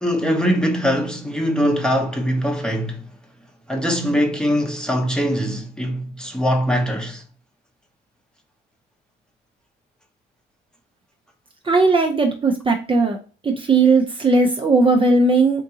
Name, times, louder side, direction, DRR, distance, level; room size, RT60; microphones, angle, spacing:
voice 1, 0.0-3.1 3.7-7.2, equal, 5° left, 0.8 m, -22 dB
voice 2, 11.6-13.2 13.4-15.6, right 3 dB, 25° right, 0.5 m, -17 dB
3.6 x 2.6 x 2.7 m
cardioid pair, 90°, 20 cm